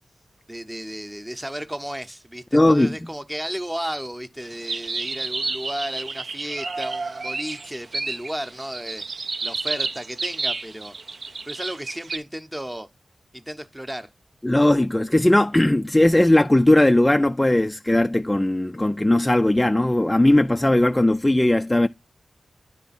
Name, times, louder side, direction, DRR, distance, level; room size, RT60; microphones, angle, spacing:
voice 1, 0.5-9.0 9.4-10.9 11.4-12.9 13.3-14.1, equal, 10° right, 0.8 m, -33 dB
voice 2, 2.5-3.0 14.4-21.9, left 1 dB, 15° left, 0.3 m, -18 dB
sound 1, 4.4-12.2, right 3 dB, 55° right, 0.5 m, -31 dB
10.0 x 3.4 x 4.1 m
wide cardioid pair, 85°, 0 cm